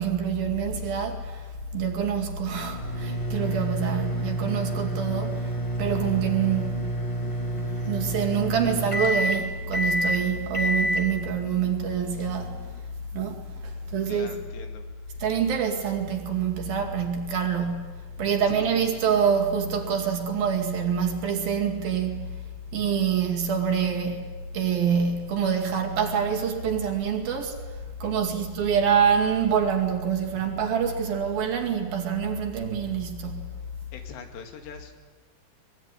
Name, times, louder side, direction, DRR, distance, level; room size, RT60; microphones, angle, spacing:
voice 1, 0.0-6.8 7.6-12.6 13.1-14.4 15.2-17.9 18.2-22.3 22.7-24.2 24.5-27.6 28.0-33.5, right 7 dB, 60° right, 4.0 m, -26 dB
sound 1, 2.5-12.8, equal, 15° left, 1.3 m, -29 dB
voice 2, 14.1-14.9 18.5-19.0 28.0-28.5 33.9-34.9, left 6 dB, 80° left, 4.4 m, -43 dB
23.0 x 22.5 x 9.9 m
omnidirectional pair, 5.0 m